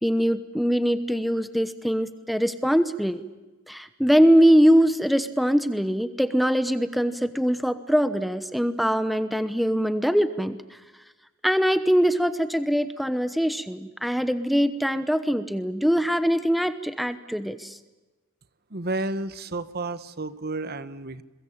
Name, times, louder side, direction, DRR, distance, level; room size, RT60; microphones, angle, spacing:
voice 1, 0.0-3.2 3.7-10.8 11.4-17.8, equal, ahead, 11 dB, 1.0 m, -22 dB
voice 2, 18.7-21.2, right 2 dB, 45° right, 14 dB, 1.2 m, -31 dB
29.0 x 22.5 x 8.7 m, 1.2 s
head